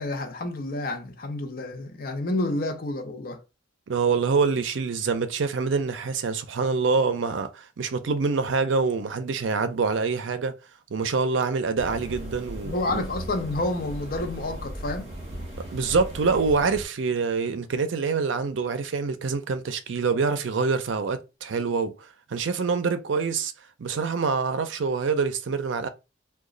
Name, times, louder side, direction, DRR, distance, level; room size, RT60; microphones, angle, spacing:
voice 1, 0.0-3.4 12.6-15.2, left 2 dB, 50° left, 0.7 m, -29 dB
voice 2, 3.9-10.5 10.9-13.0 15.7-23.5 23.8-25.9, right 4 dB, 75° right, 0.5 m, -26 dB
sound 1, 11.8-16.8, equal, 35° right, 1.4 m, -37 dB
3.0 x 2.2 x 3.7 m
head